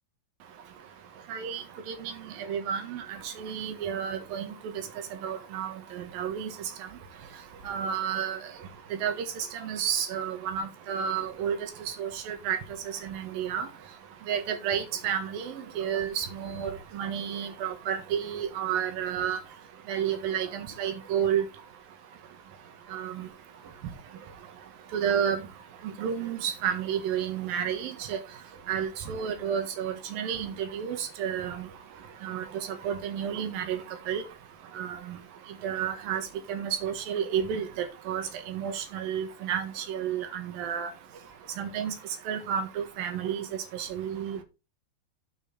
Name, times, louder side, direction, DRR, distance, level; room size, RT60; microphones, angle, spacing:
voice 1, 0.5-21.7 22.1-44.4, right 8 dB, 65° right, 2.9 m, -32 dB
9.9 x 5.7 x 4.3 m
omnidirectional pair, 5.1 m